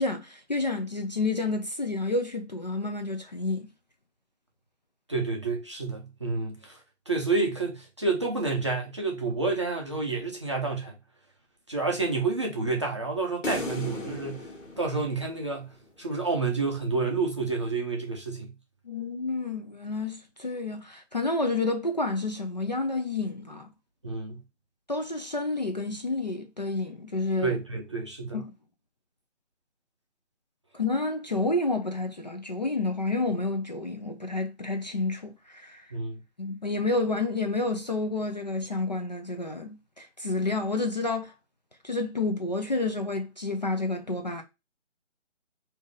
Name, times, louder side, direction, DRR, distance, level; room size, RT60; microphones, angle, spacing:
voice 1, 0.0-3.7 18.9-23.7 24.9-27.6 28.3-28.5 30.7-35.8 36.4-41.3 41.8-44.4, left 2 dB, 35° left, 0.4 m, -29 dB
voice 2, 5.1-6.8 7.1-11.0 11.7-14.5 14.8-18.6 24.0-24.4 27.4-28.4 35.9-36.2, right 3 dB, 25° right, 0.5 m, -29 dB
sound 1, 13.4-15.8, left 2 dB, 75° left, 1.5 m, -36 dB
3.5 x 2.7 x 3.8 m
figure-of-eight pair, 155°, 37 cm